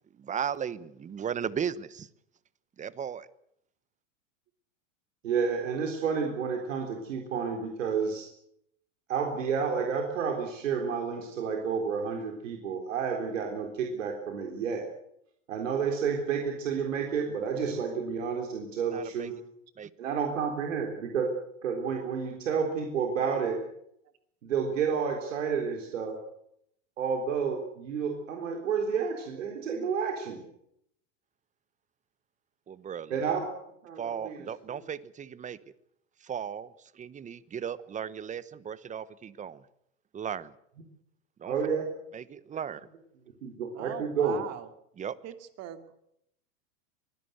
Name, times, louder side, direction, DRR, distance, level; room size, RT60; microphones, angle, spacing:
voice 1, 0.2-2.1 2.8-3.3 18.9-19.3 19.8-19.9 32.7-33.2 34.0-35.7 36.2-39.6 40.1-40.5 41.4-41.5 42.1-42.9 45.0-45.2, right 8 dB, 20° right, 18 dB, 1.0 m, -36 dB
voice 2, 5.2-8.3 9.1-14.9 15.5-19.4 20.0-21.3 21.6-23.6 24.4-26.2 27.0-30.4 33.1-33.4 33.8-34.5 41.5-41.8 42.5-42.6 43.4-44.4, right 6 dB, 85° right, 2 dB, 3.9 m, -30 dB
voice 3, 43.7-44.7 45.2-46.0, right 11 dB, 40° right, 8 dB, 2.7 m, -41 dB
23.5 x 16.5 x 8.0 m, 0.75 s
hypercardioid pair, 115°, 37 cm